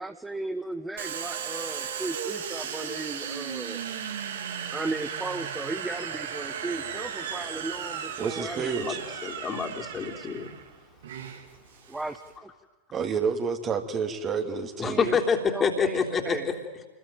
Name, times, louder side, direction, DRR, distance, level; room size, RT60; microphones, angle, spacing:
voice 1, 0.0-3.8 4.7-8.8 11.9-12.5 14.8-15.2 15.5-16.5, right 2 dB, 10° right, 9 dB, 1.3 m, -36 dB
Domestic sounds home sounds, 1.0-12.3, right 8 dB, 60° right, 3.2 m, -36 dB
voice 2, 8.2-9.0 12.9-15.1, right 5 dB, 25° right, 6 dB, 3.0 m, -29 dB
voice 3, 9.2-10.5 14.8-16.5, left 5 dB, 20° left, 4 dB, 3.6 m, -27 dB
29.0 x 21.5 x 9.2 m, 1.3 s
figure-of-eight pair, 90°, 0 cm